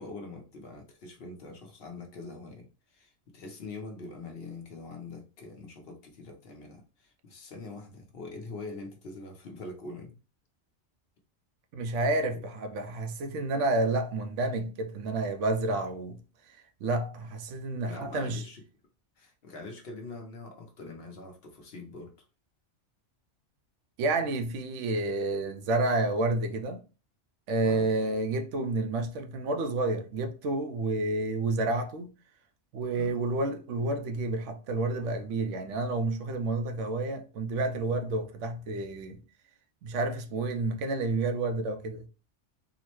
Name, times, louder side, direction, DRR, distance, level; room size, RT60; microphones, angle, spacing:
voice 1, 0.0-2.7 2.9-10.2 17.8-18.6 19.2-22.1 27.6-27.9 32.9-33.2, left 3 dB, 60° left, 0.9 m, -44 dB
voice 2, 11.7-16.2 16.5-18.4 24.0-26.8 27.5-32.1 32.7-39.2 39.8-42.1, right 2 dB, 85° right, 0.9 m, -30 dB
3.9 x 2.0 x 2.9 m
omnidirectional pair, 1.2 m